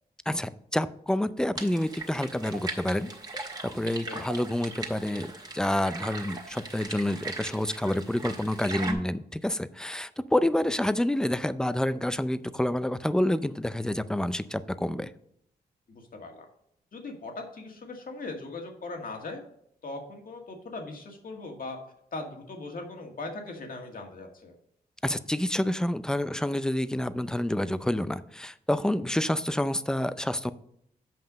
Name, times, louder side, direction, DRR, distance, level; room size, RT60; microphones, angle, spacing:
voice 1, 0.3-3.1 3.6-15.1 25.0-30.5, left 1 dB, 5° left, 14 dB, 0.4 m, -28 dB
sound 1, 1.6-8.9, right 2 dB, 25° right, 1.8 m, -39 dB
voice 2, 15.9-16.5 16.9-19.4 19.8-21.8 22.1-24.5, left 3 dB, 60° left, 2 dB, 1.9 m, -39 dB
8.0 x 5.5 x 5.1 m, 0.71 s
wide cardioid pair, 100°, 17 cm